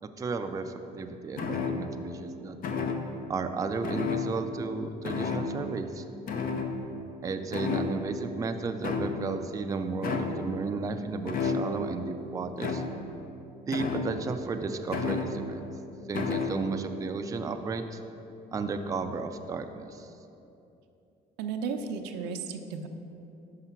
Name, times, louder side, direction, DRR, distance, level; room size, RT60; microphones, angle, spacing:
voice 1, 0.0-2.6 3.3-6.0 7.2-12.8 13.7-15.7 16.1-18.0 18.5-20.1, right 4 dB, 20° right, 6 dB, 0.3 m, -33 dB
sound 1, 1.4-2.1 2.6-3.3 3.8-4.7 5.0-5.7 6.3-7.2 7.5-8.3 8.8-9.4 10.0-10.5 11.3-11.9 12.6-13.1 13.7-14.4 14.9-15.6 16.1-16.6, left 4 dB, 60° left, 0.6 m, -32 dB
voice 2, 21.4-22.9, right 5 dB, 90° right, 6 dB, 0.5 m, -34 dB
5.7 x 5.0 x 5.7 m, 2.8 s
cardioid pair, 110°, 17 cm